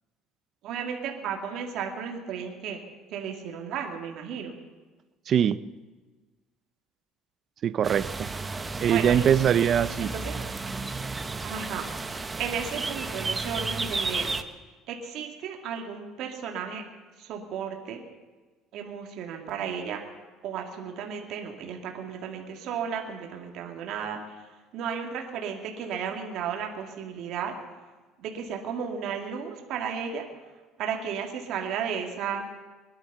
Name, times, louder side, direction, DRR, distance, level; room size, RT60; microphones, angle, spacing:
voice 1, 0.6-2.8 3.1-4.6 8.9-9.3 10.0-10.5 11.4-14.4 14.9-16.8 17.2-18.0 18.7-20.0 20.4-24.5 24.7-27.5 28.2-30.3 30.8-32.4, right 7 dB, 60° right, 2 dB, 2.3 m, -34 dB
voice 2, 5.3-5.6 7.6-8.3 8.8-10.1, right 9 dB, 45° right, 16 dB, 0.6 m, -22 dB
sound 1, 7.8-14.4, right 3 dB, 15° right, 0.9 m, -33 dB
21.5 x 11.0 x 5.5 m, 1.3 s
cardioid pair, 130°, 0 cm